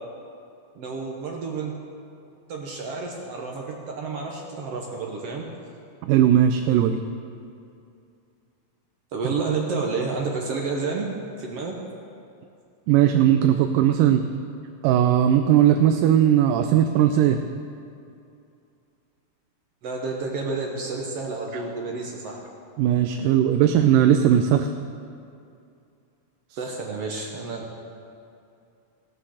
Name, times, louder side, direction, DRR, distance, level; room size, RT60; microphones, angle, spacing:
voice 1, 0.7-1.7 2.5-5.4 9.1-11.1 11.4-11.8 19.8-22.4 26.6-27.6, right 4 dB, 60° right, 0 dB, 1.7 m, -30 dB
voice 2, 6.0-7.0 12.9-14.3 14.8-17.4 22.8-24.7, right 10 dB, 85° right, 7 dB, 2.1 m, -18 dB
17.0 x 7.8 x 6.4 m, 2.5 s
omnidirectional pair, 3.8 m